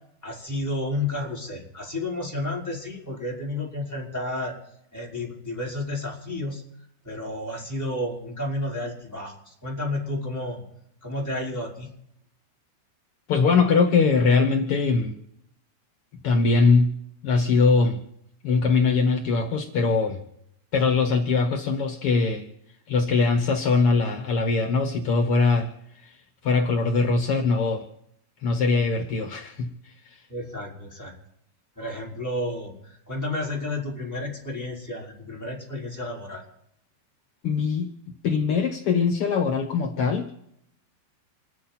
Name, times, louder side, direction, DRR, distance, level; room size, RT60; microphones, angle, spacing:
voice 1, 0.2-4.5 4.9-6.6 7.0-10.6 11.0-11.9 30.3-31.1 31.8-36.4, left 1 dB, 5° left, -4 dB, 4.8 m, -31 dB
voice 2, 13.3-15.1 16.2-17.0 17.2-18.0 18.4-20.2 20.7-22.4 22.9-25.7 26.0-26.2 26.4-27.8 28.4-29.7 30.0-30.2 37.4-37.9 38.2-40.3, left 4 dB, 70° left, 3 dB, 1.3 m, -22 dB
28.0 x 10.5 x 4.4 m, 0.74 s
omnidirectional pair, 5.1 m